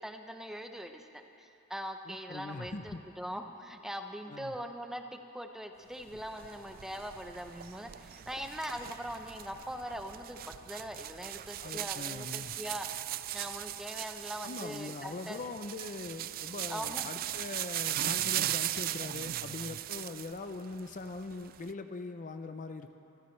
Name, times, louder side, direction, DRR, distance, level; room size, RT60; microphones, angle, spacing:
voice 1, 0.0-5.0 5.3-12.9 13.3-15.4 16.7-17.1, equal, ahead, 5 dB, 0.7 m, -41 dB
voice 2, 2.1-3.0 4.3-4.5 11.6-12.6 14.4-22.9, left 3 dB, 35° left, 8 dB, 0.5 m, -42 dB
sound 1, 6.1-20.4 20.7-21.7, right 13 dB, 40° right, 0.3 m, -38 dB
25.5 x 15.0 x 3.2 m, 2.7 s
head